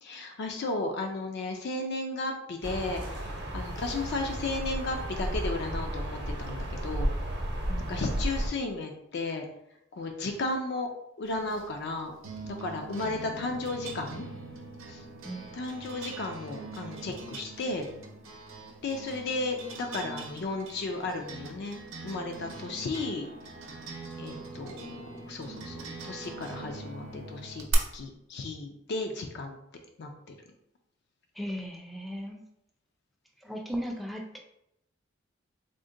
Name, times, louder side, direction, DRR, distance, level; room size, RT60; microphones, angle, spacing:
voice 1, 0.0-7.1 7.9-9.5 9.9-10.9 11.2-12.1 12.5-14.2 14.9-15.0 15.5-17.9 18.8-23.3 24.2-29.6 30.0-30.3, left 2 dB, 60° left, 3 dB, 0.4 m, -34 dB
sound 1, 2.6-8.5, right 1 dB, 60° right, 0.7 m, -33 dB
voice 2, 7.7-8.1 15.2-15.5 31.3-32.4 33.4-34.4, equal, ahead, 2 dB, 0.4 m, -37 dB
sound 2, 11.3-27.7, right 4 dB, 85° right, 0.6 m, -42 dB
3.7 x 2.1 x 3.7 m, 0.80 s
head